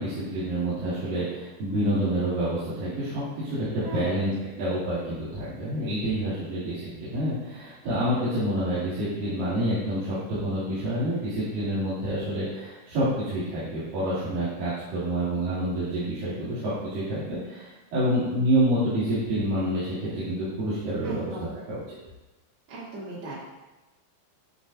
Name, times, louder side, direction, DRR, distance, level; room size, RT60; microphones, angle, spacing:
voice 1, 0.0-4.3 4.6-21.3 21.7-22.0, right 1 dB, 65° right, -13 dB, 4.5 m, -28 dB
voice 2, 3.8-4.2 6.3-6.4 21.0-21.5 22.7-23.4, right 2 dB, 85° right, -9 dB, 5.0 m, -37 dB
13.0 x 7.4 x 2.7 m, 1.1 s
omnidirectional pair, 4.3 m